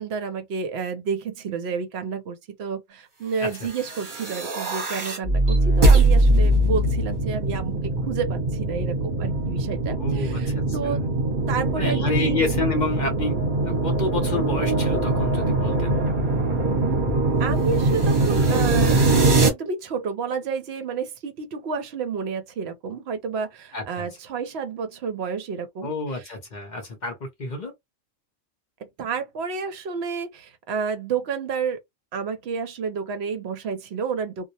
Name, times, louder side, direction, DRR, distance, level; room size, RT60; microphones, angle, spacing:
voice 1, 0.0-11.0 11.5-12.4 17.4-19.0 19.4-25.9 29.0-31.8 32.1-34.5, right 5 dB, 65° right, 0.8 m, -30 dB
sound 1, 3.7-19.5, right 2 dB, 45° right, 1.0 m, -22 dB
voice 2, 10.0-11.0 11.7-13.4 13.6-16.0 23.7-24.1 25.8-27.7, left 3 dB, 45° left, 0.7 m, -29 dB
2.3 x 2.0 x 2.7 m
omnidirectional pair, 1.3 m